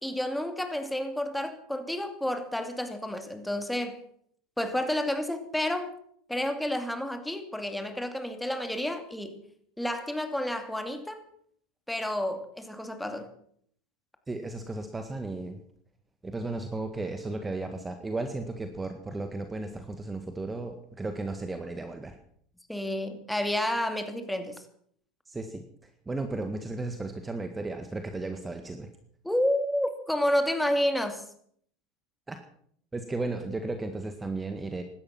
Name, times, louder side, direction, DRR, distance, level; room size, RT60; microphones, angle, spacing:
voice 1, 0.0-4.0 4.6-5.9 6.3-9.4 9.8-11.2 11.9-13.3 22.7-24.6 29.2-31.3, left 1 dB, 5° left, 7 dB, 2.5 m, -30 dB
voice 2, 14.3-15.6 16.2-22.2 25.3-25.6 26.0-28.9 32.3-32.4 32.9-34.8, right 2 dB, 15° right, 7 dB, 1.8 m, -34 dB
17.0 x 12.5 x 6.0 m, 0.63 s
hypercardioid pair, 85°, 0 cm